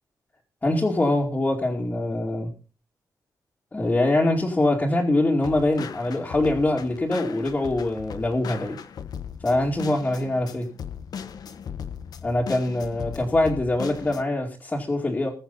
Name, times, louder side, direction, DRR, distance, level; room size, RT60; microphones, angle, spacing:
voice 1, 0.6-2.5 3.7-8.8 9.4-10.7 12.2-15.3, left 2 dB, 20° left, -4 dB, 2.4 m, -23 dB
sound 1, 5.4-14.2, left 7 dB, 70° left, 1.0 m, -38 dB
21.0 x 7.2 x 4.1 m, 0.35 s
wide cardioid pair, 160°, 7 cm